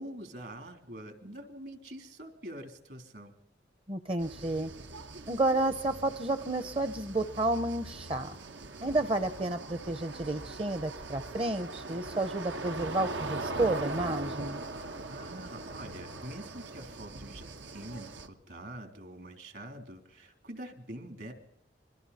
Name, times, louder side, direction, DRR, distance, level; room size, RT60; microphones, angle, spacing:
voice 1, 0.0-3.3 14.7-21.3, right 1 dB, 65° right, 6 dB, 3.4 m, -45 dB
voice 2, 3.9-4.7 5.3-8.4 8.8-14.6, right 2 dB, 30° right, 10 dB, 0.7 m, -31 dB
sound 1, 4.2-18.3, right 2 dB, 90° right, 1.4 m, -41 dB
27.0 x 23.0 x 4.2 m, 0.84 s
head